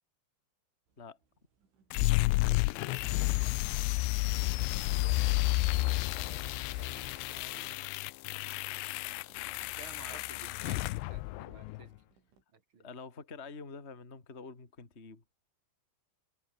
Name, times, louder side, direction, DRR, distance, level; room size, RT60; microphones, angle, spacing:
sound 1, 0.9-12.4, right 5 dB, 90° right, 8.6 m, -71 dB
sound 2, 1.9-11.9, left 22 dB, 80° left, 2.7 m, -31 dB
sound 3, 2.6-7.8, left 11 dB, 65° left, 3.5 m, -49 dB
voice 1, 2.6-3.4 4.7-8.0 9.5-11.9 12.5-12.9, right 5 dB, 35° right, 2.7 m, -55 dB
voice 2, 12.8-15.2, left 4 dB, 20° left, 2.4 m, -47 dB
omnidirectional pair, 5.3 m